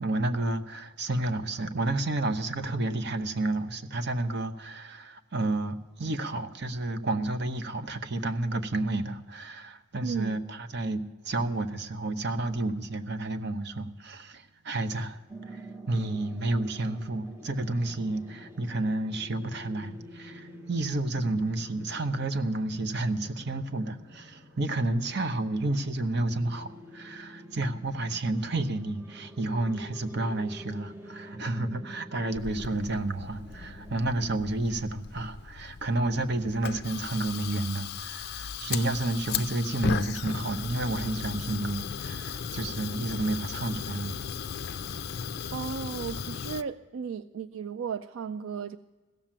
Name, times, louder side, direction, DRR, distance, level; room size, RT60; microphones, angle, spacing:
voice 1, 0.0-44.2, right 2 dB, 55° right, 0.8 m, -31 dB
voice 2, 10.0-10.4 45.5-48.8, right 6 dB, 75° right, 0.4 m, -35 dB
sound 1, 15.3-34.0, right 1 dB, 10° right, 0.8 m, -48 dB
Fire, 32.3-46.6, left 7 dB, 50° left, 0.4 m, -36 dB
16.0 x 7.5 x 8.7 m
head